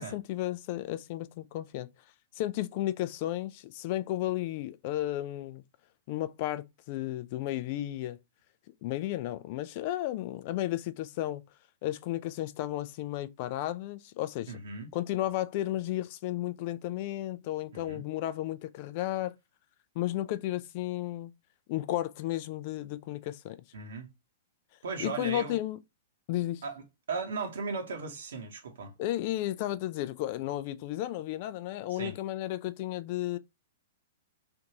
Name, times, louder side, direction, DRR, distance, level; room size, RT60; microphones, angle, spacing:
voice 1, 0.0-1.9 2.3-5.6 6.1-8.2 8.8-11.4 11.8-14.5 14.9-19.4 20.0-21.3 21.7-23.6 25.0-25.8 26.3-26.6 29.0-33.4, left 14 dB, 45° left, 0.4 m, -33 dB
voice 2, 14.5-14.9 17.7-18.0 23.7-24.1 24.8-25.6 26.6-28.9 31.9-32.2, right 4 dB, 70° right, 0.9 m, -37 dB
3.4 x 2.6 x 2.8 m
figure-of-eight pair, 110°, 0 cm